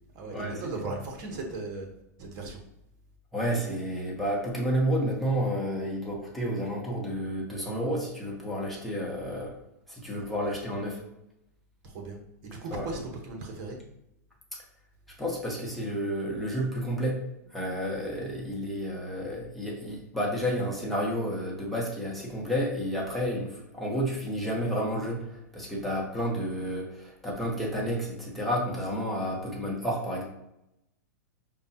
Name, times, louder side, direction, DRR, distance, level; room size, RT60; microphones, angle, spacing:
voice 1, 0.1-1.9 2.2-2.6 10.3-10.6 11.8-12.2 12.4-13.8, right 2 dB, 45° right, 2 dB, 1.1 m, -37 dB
voice 2, 3.3-9.5 9.9-11.0 12.7-12.9 15.2-30.2, equal, ahead, -4 dB, 1.0 m, -31 dB
5.1 x 2.3 x 2.8 m, 0.84 s
hypercardioid pair, 125°, 9 cm